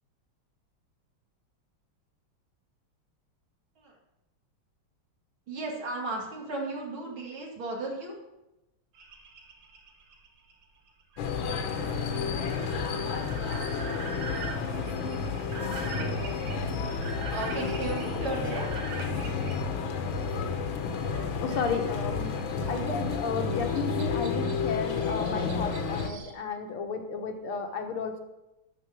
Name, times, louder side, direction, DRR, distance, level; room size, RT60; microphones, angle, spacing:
voice 1, 5.5-8.2 17.3-18.7, right 2 dB, 70° right, -2 dB, 3.0 m, -34 dB
sound 1, 8.9-19.5 21.1-26.3, right 5 dB, 90° right, 2.1 m, -45 dB
sound 2, 11.2-26.1, left 5 dB, 70° left, 1.7 m, -31 dB
voice 2, 21.4-28.2, left 5 dB, 85° left, 4 dB, 2.1 m, -33 dB
12.5 x 4.4 x 6.0 m, 0.96 s
omnidirectional pair, 2.3 m